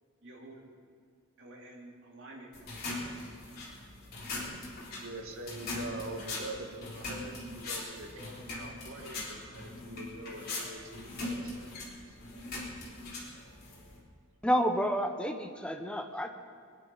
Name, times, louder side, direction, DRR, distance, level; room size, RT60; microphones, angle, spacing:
voice 1, 0.2-0.6 1.4-3.4, right 1 dB, 60° right, -1 dB, 2.9 m, -51 dB
sound 1, 2.5-14.0, left 2 dB, 50° left, 3.8 m, -41 dB
voice 2, 5.0-11.7, right 2 dB, 80° right, 2 dB, 2.0 m, -44 dB
voice 3, 14.4-16.3, equal, 5° left, 5 dB, 0.9 m, -29 dB
22.5 x 10.5 x 5.7 m, 2.2 s
head